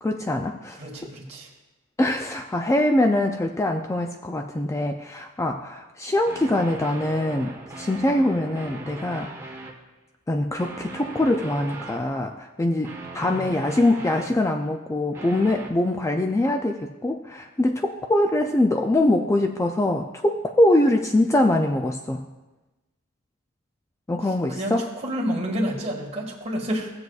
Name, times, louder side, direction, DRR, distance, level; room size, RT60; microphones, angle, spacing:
voice 1, 0.0-0.8 2.0-9.4 10.3-22.2 24.1-24.9, left 1 dB, 15° left, 4 dB, 0.3 m, -23 dB
voice 2, 0.8-1.5 13.2-13.6 24.5-26.9, equal, 30° right, -2 dB, 1.8 m, -29 dB
sound 1, 6.3-9.8 10.6-12.1 12.8-14.6 15.1-15.7, right 2 dB, 10° right, 1.2 m, -39 dB
16.5 x 7.8 x 2.4 m, 1.1 s
head